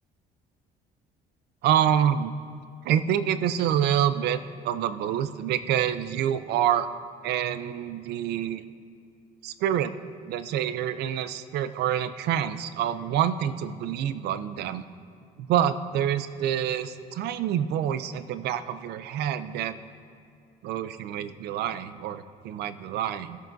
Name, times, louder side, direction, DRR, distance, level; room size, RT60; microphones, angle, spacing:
voice 1, 1.6-2.3 2.8-6.9 7.2-8.6 9.4-9.9 10.2-14.8 15.4-19.8 20.6-23.4, right 10 dB, 75° right, 13 dB, 0.5 m, -27 dB
15.5 x 7.6 x 2.6 m, 2.5 s
cardioid pair, 110°, 17 cm